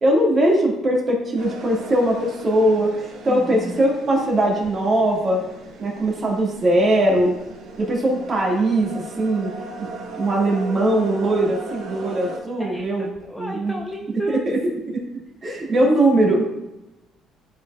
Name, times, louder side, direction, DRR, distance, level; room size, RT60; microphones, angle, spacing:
voice 1, 0.0-2.9 3.2-5.4 5.8-7.4 7.8-9.5 9.8-9.9 10.2-13.1 13.4-13.7 14.3-14.6 14.9-15.0 15.4-16.5, right 1 dB, 30° right, -3 dB, 2.0 m, -20 dB
sound 1, 1.4-12.4, right 2 dB, 90° right, 2.1 m, -38 dB
voice 2, 3.3-3.9 12.6-14.5 15.7-15.9, equal, 5° left, 0 dB, 0.5 m, -32 dB
11.0 x 4.3 x 2.4 m, 0.97 s
cardioid pair, 130°, 0 cm